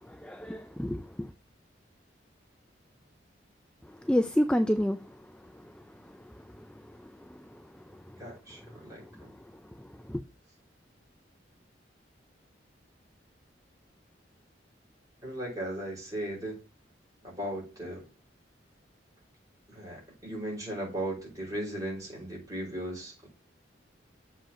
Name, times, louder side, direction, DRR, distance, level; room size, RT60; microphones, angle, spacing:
voice 1, 0.2-1.3 4.1-5.0 10.1-10.2, equal, 5° left, 0.4 m, -27 dB
voice 2, 8.2-9.3 15.2-16.6 17.2-18.0 19.7-23.3, right 1 dB, 20° right, 4.9 m, -37 dB
7.3 x 3.9 x 5.8 m
head